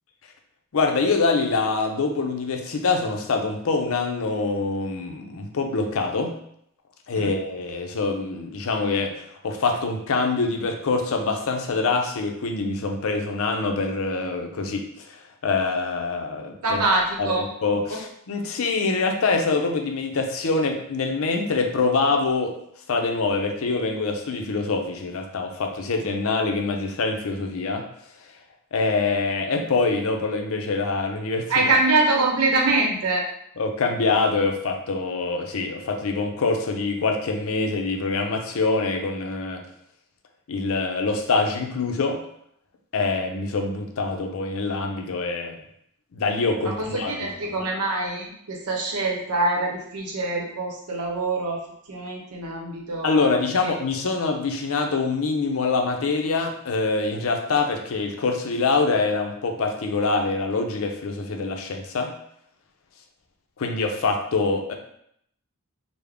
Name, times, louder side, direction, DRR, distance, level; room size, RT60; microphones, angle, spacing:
voice 1, 0.7-6.3 7.1-16.8 17.2-22.5 22.9-27.8 28.7-31.5 33.6-39.6 40.5-42.2 42.9-45.6 46.1-47.1 53.0-62.1 63.6-64.7, left 3 dB, 65° left, 3 dB, 0.5 m, -25 dB
voice 2, 16.6-17.4 17.9-18.0 31.5-33.2 46.6-51.6 51.9-53.3, right 2 dB, 85° right, 0 dB, 0.8 m, -24 dB
3.4 x 2.0 x 3.5 m, 0.71 s
head